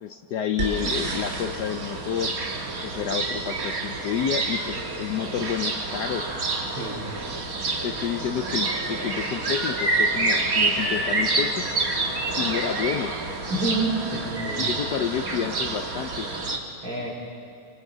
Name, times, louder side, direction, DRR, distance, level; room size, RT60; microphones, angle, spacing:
voice 1, 0.0-2.3 2.8-6.2 7.8-11.7 12.4-13.1 14.6-16.3, left 9 dB, 65° left, 8 dB, 1.1 m, -29 dB
sound 1, 0.6-16.6, right 3 dB, 45° right, 2.1 m, -28 dB
voice 2, 6.7-7.0 13.5-14.6 16.8-17.1, right 2 dB, 75° right, -4 dB, 6.2 m, -28 dB
29.5 x 26.0 x 4.0 m, 2.4 s
omnidirectional pair, 2.2 m